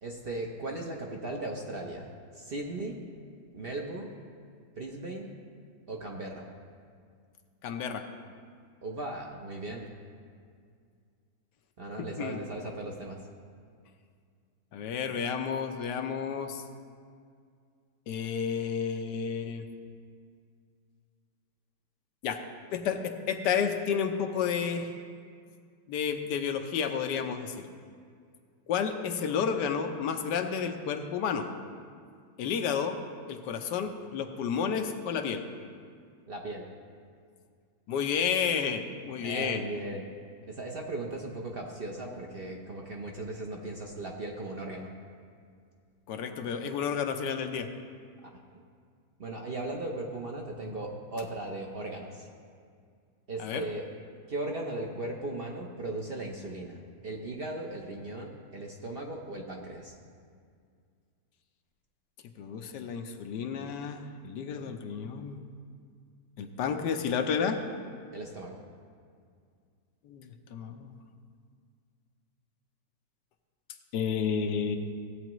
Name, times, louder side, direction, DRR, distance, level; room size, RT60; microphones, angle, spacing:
voice 1, 0.0-2.1 2.3-3.0 3.5-4.1 4.8-5.3 5.9-6.5 8.8-9.9 11.8-13.3 36.3-36.7 39.2-40.1 40.4-44.9 48.2-48.6 49.2-52.3 53.3-53.9 54.3-59.9 68.1-68.6, right 2 dB, 50° right, 0 dB, 0.7 m, -37 dB
voice 2, 7.6-8.0 12.0-12.4 14.7-16.6 18.1-19.6 22.2-22.4 22.7-24.9 25.9-27.7 28.7-31.5 32.4-33.0 33.3-35.4 37.9-39.6 46.1-47.7 53.4-53.6 62.4-65.4 66.4-67.6 70.0-70.9 73.9-74.8, left 7 dB, 75° left, 6 dB, 1.3 m, -31 dB
16.0 x 8.5 x 3.0 m, 2.2 s
omnidirectional pair, 1.9 m